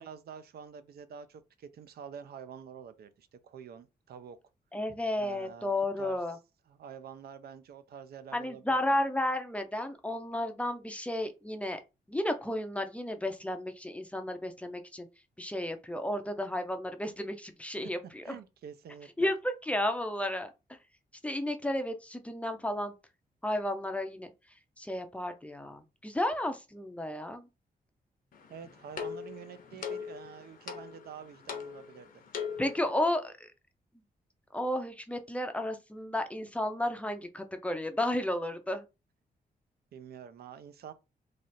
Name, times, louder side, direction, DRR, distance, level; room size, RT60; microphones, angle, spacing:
voice 1, 0.0-4.4 5.2-5.7 6.0-6.2 6.7-8.8 18.2-19.3 28.5-32.2 39.9-40.9, right 7 dB, 75° right, 0.5 m, -47 dB
voice 2, 4.7-6.4 8.3-11.8 12.1-15.1 15.4-18.4 19.2-20.8 21.2-22.9 23.4-27.5 32.6-33.5 34.5-38.8, left 1 dB, 10° left, 0.4 m, -33 dB
sound 1, 28.3-32.9, left 7 dB, 60° left, 0.7 m, -41 dB
3.2 x 2.4 x 4.1 m
wide cardioid pair, 160°, 16 cm